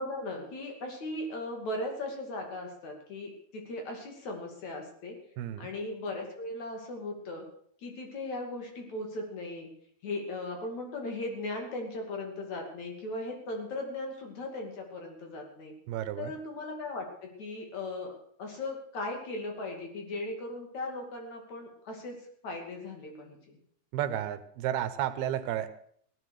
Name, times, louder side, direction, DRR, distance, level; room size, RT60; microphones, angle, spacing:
voice 1, 0.0-5.2 5.6-7.5 7.8-9.7 10.0-15.7 16.2-18.1 18.4-22.2 22.4-23.6, left 2 dB, 50° left, 2 dB, 3.7 m, -38 dB
voice 2, 5.4-5.7 15.9-16.3 23.9-25.7, right 11 dB, 85° right, 12 dB, 2.9 m, -32 dB
16.5 x 11.5 x 6.5 m, 0.62 s
omnidirectional pair, 4.4 m